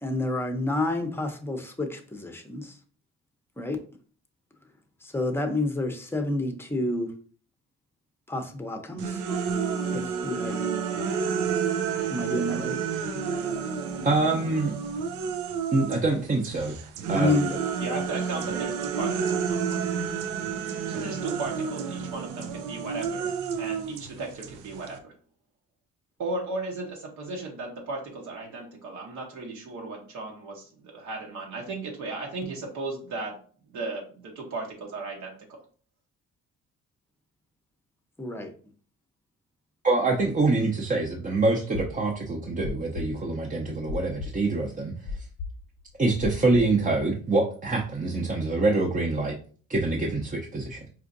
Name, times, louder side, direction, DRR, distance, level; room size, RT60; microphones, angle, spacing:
voice 1, 0.0-2.7 3.6-3.8 5.0-7.1 8.3-9.2 9.9-10.6 12.1-12.8 17.1-17.6 38.2-38.5, left 2 dB, 10° left, 4 dB, 0.7 m, -29 dB
sound 1, 9.0-16.1 16.4-25.0, right 6 dB, 90° right, 0.5 m, -30 dB
voice 2, 14.0-14.7 15.7-16.8 17.1-17.3 39.8-44.9 46.0-49.3 49.7-50.8, right 3 dB, 25° right, -1 dB, 0.6 m, -25 dB
voice 3, 17.8-19.8 20.9-25.1 26.2-33.4 33.7-35.6, right 3 dB, 75° right, 0 dB, 1.0 m, -36 dB
sound 2, 41.7-46.8, left 4 dB, 75° left, 0.6 m, -36 dB
4.5 x 2.5 x 2.5 m, 0.42 s
cardioid pair, 90°, 30 cm